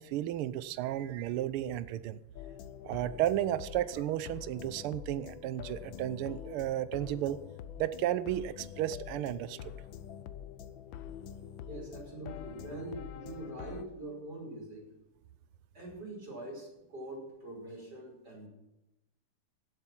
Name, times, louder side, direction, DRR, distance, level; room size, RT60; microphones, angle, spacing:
voice 1, 0.0-2.2 2.8-7.4 7.8-9.7, right 12 dB, 85° right, 15 dB, 1.6 m, -33 dB
sound 1, 2.3-13.8, left 9 dB, 70° left, 1.4 m, -46 dB
voice 2, 11.7-14.8 15.7-18.5, right 1 dB, 50° right, -2 dB, 6.2 m, -43 dB
17.0 x 8.1 x 6.0 m, 0.93 s
omnidirectional pair, 2.3 m